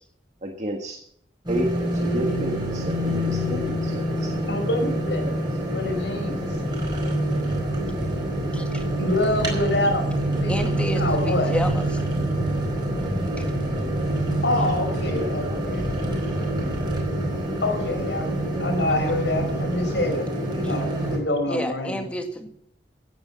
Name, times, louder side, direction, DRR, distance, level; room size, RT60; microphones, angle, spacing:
voice 1, 0.4-1.0 1.5-4.5 4.9-5.4 14.1-14.2 14.8-15.7 16.0-16.1, equal, 40° right, 3 dB, 1.5 m, -32 dB
sound 1, 1.5-21.2, right 1 dB, 25° right, 4.9 m, -26 dB
voice 2, 4.5-5.3 5.7-6.4 9.0-10.0 10.4-10.5 10.9-11.5 14.4-16.1 17.6-20.2 20.5-22.1, left 1 dB, 75° left, 2 dB, 5.2 m, -26 dB
voice 3, 8.5-8.8 10.5-12.0 21.5-22.5, equal, 5° left, 5 dB, 1.9 m, -30 dB
16.0 x 9.6 x 5.7 m, 0.72 s
head